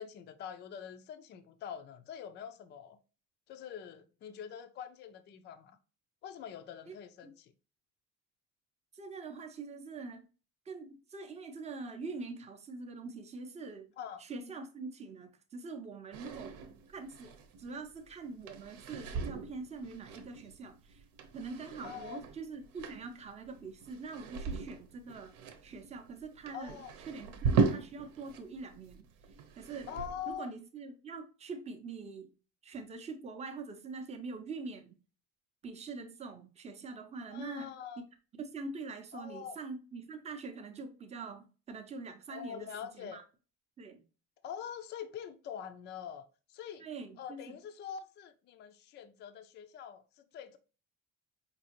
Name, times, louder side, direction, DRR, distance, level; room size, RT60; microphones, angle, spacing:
voice 1, 0.0-3.0 3.5-5.8 6.2-7.5 14.0-14.2 21.8-22.2 26.5-26.9 29.9-30.5 37.3-38.1 39.1-39.6 42.3-43.2 44.4-46.2 46.5-46.9 47.2-50.6, left 8 dB, 35° left, 0.4 m, -44 dB
voice 2, 8.9-10.3 10.7-13.9 14.2-16.5 16.9-21.0 21.3-25.3 25.6-29.1 29.6-29.9 30.3-32.3 32.6-35.0 35.6-37.7 38.4-43.2 43.8-44.0 46.8-47.6, right 4 dB, 20° right, 0.6 m, -44 dB
sound 1, 16.1-28.4 28.7-30.3, right 5 dB, 75° right, 0.9 m, -38 dB
5.3 x 2.8 x 2.9 m
cardioid pair, 175°, 34 cm